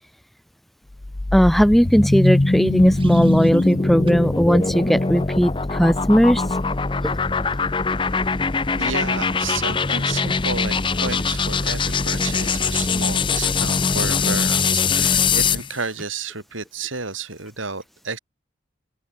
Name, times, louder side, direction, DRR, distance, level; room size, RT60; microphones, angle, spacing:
sound 1, 0.9-15.7, left 4 dB, 25° left, 0.6 m, -22 dB
voice 1, 1.3-6.4 7.0-7.1, equal, ahead, 1.0 m, -17 dB
sound 2, 1.9-3.8 4.1-4.3 4.8-5.0, right 5 dB, 25° right, 6.1 m, -47 dB
voice 2, 8.8-18.2, right 4 dB, 90° right, 6.2 m, -31 dB
open air
head